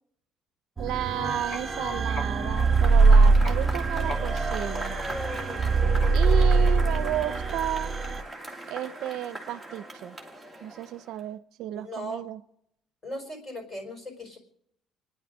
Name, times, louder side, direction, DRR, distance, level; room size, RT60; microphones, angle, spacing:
sound 1, 0.8-8.2, right 4 dB, 15° right, 1.2 m, -22 dB
voice 1, 0.8-5.0 6.1-8.0 8.7-10.2 10.6-12.4, right 12 dB, 75° right, 13 dB, 0.6 m, -33 dB
sound 2, 0.9-7.7, left 2 dB, 40° left, 5.2 m, -41 dB
Cheering / Applause / Crowd, 2.5-11.2, right 1 dB, 5° left, 1.9 m, -38 dB
voice 2, 11.7-12.2 13.0-14.4, equal, 25° left, 5 dB, 4.3 m, -37 dB
28.5 x 10.0 x 5.0 m, 0.74 s
cardioid pair, 170°, 0 cm